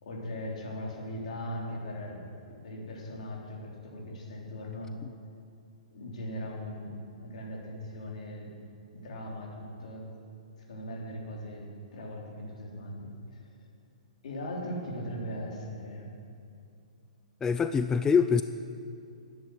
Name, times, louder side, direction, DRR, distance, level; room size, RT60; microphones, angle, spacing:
voice 1, 0.0-5.0 5.9-8.6 8.9-10.1 10.7-13.4 14.2-16.1, equal, 65° left, -1 dB, 3.5 m, -39 dB
voice 2, 17.4-18.4, left 6 dB, 15° left, 10 dB, 0.4 m, -24 dB
11.5 x 9.7 x 9.0 m, 2.4 s
hypercardioid pair, 125°, 4 cm